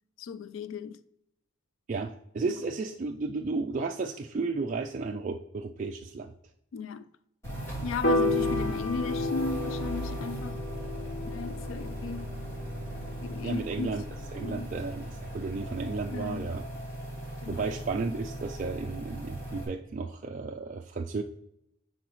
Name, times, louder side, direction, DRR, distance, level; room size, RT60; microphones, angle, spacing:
voice 1, 0.2-1.0 6.7-7.1 7.8-10.6 11.3-12.4 13.2-13.9 14.4-14.7 16.1-16.5 17.4-17.7, left 4 dB, 70° left, 0.3 m, -36 dB
voice 2, 1.9-6.3 13.4-14.0 14.3-16.6 17.5-21.2, right 4 dB, 40° right, 0.3 m, -33 dB
sound 1, 7.4-19.7, right 1 dB, 15° left, 2.6 m, -38 dB
Piano, 8.0-14.3, left 2 dB, 55° left, 1.0 m, -32 dB
10.0 x 3.9 x 3.1 m
head